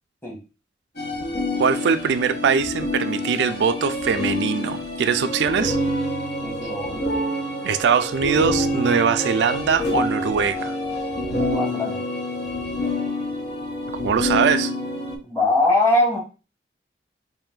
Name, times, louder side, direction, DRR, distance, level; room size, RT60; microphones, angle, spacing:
sound 1, 1.0-15.2, left 1 dB, 65° left, 1.1 m, -27 dB
voice 1, 1.6-5.8 7.6-10.8 14.0-14.7, right 6 dB, 80° right, 0.3 m, -22 dB
voice 2, 6.4-7.1 11.4-12.0 15.2-16.2, left 2 dB, 15° left, 1.2 m, -21 dB
3.9 x 2.5 x 3.6 m
head